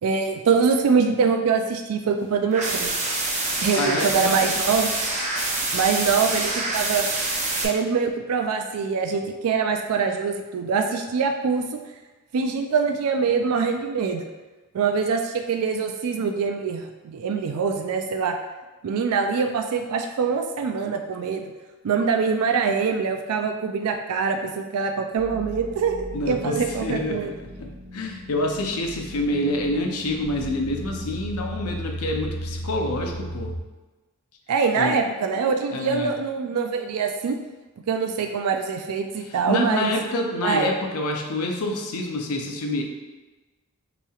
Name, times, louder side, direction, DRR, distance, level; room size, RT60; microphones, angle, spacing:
voice 1, 0.0-3.0 3.6-4.9 5.7-7.0 7.6-11.8 12.3-14.3 14.7-18.4 18.8-21.5 21.8-27.3 34.5-37.4 37.9-39.9 40.4-40.7, right 5 dB, 90° right, 5 dB, 0.4 m, -24 dB
sound 1, 2.5-7.6, right 2 dB, 30° right, 0.6 m, -26 dB
voice 2, 3.8-4.4 26.1-33.5 34.8-35.0 35.7-36.1 39.5-42.8, left 1 dB, 80° left, 2 dB, 0.7 m, -27 dB
sound 2, 25.2-33.6, equal, 15° right, 1.1 m, -36 dB
5.6 x 3.1 x 2.4 m, 1.2 s
head